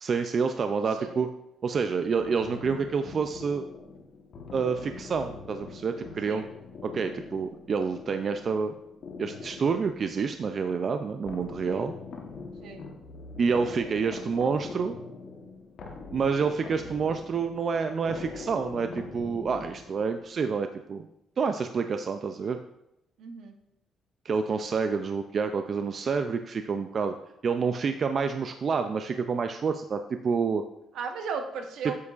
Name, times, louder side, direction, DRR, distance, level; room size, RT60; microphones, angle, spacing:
voice 1, 0.0-1.3 1.6-3.6 4.5-6.4 6.8-8.7 9.2-11.9 13.4-15.0 16.1-21.1 21.4-22.6 24.3-27.2 27.4-30.6, right 5 dB, 35° right, 7 dB, 0.3 m, -28 dB
sound 1, 2.2-20.3, left 4 dB, 50° left, 1.1 m, -43 dB
voice 2, 23.2-23.6 30.9-32.0, right 5 dB, 70° right, 4 dB, 0.9 m, -36 dB
8.3 x 7.1 x 2.4 m, 0.85 s
cardioid pair, 155°, 0 cm